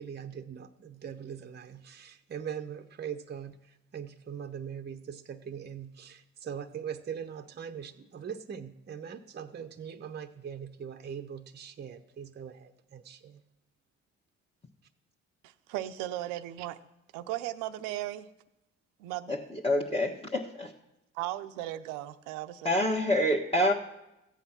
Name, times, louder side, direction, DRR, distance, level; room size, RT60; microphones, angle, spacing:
voice 1, 0.0-13.4, right 8 dB, 30° right, 0.8 m, -41 dB
voice 2, 15.4-16.8 17.1-18.3 19.0-19.3 21.1-22.7, right 14 dB, 85° right, 0.7 m, -36 dB
voice 3, 19.3-20.7 22.6-23.7, left 1 dB, 15° left, 1.4 m, -27 dB
14.5 x 8.2 x 6.0 m
hypercardioid pair, 50°, 32 cm